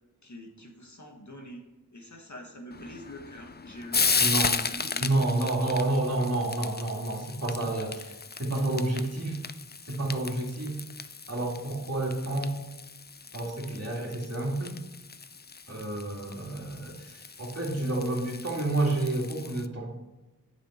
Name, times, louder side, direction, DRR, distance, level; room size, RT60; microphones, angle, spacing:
voice 1, 0.2-1.6 1.9-5.1 13.3-13.4, equal, 60° left, 2 dB, 1.6 m, -45 dB
Frying (food), 2.7-19.7, left 5 dB, 30° left, 0.4 m, -35 dB
voice 2, 4.2-4.6 5.0-9.4 9.9-10.8 11.3-12.5 13.3-14.8 15.7-19.9, right 2 dB, 50° right, -3 dB, 2.4 m, -29 dB
9.0 x 6.6 x 4.3 m, 1.0 s
wide cardioid pair, 45°, 33 cm